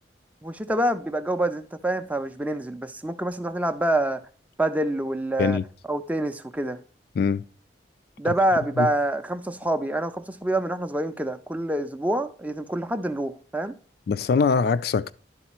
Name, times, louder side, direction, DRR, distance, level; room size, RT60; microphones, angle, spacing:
voice 1, 0.4-4.2 4.6-5.6 5.9-6.8 8.2-13.8, right 1 dB, 10° right, 0.4 m, -26 dB
voice 2, 14.1-15.1, left 5 dB, 55° left, 0.3 m, -22 dB
11.0 x 3.9 x 4.3 m
head